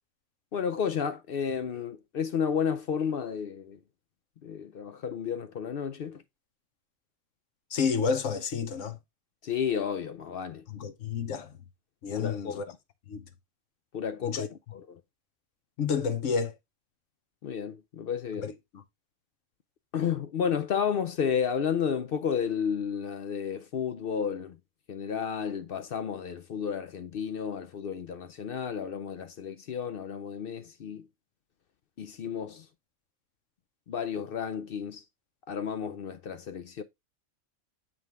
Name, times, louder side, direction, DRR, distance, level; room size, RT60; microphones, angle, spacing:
voice 1, 0.5-3.8 4.4-6.2 9.4-10.6 12.1-12.6 13.9-14.8 17.4-18.5 19.9-24.6 24.9-31.0 32.0-32.6 33.9-35.0 35.5-36.8, left 7 dB, 60° left, 0.7 m, -32 dB
voice 2, 7.7-9.0 10.7-11.5 12.0-12.6 13.1-13.2 14.2-14.5 15.8-16.5 18.4-18.8, left 5 dB, 80° left, 1.2 m, -30 dB
7.8 x 3.8 x 3.4 m
omnidirectional pair, 1.3 m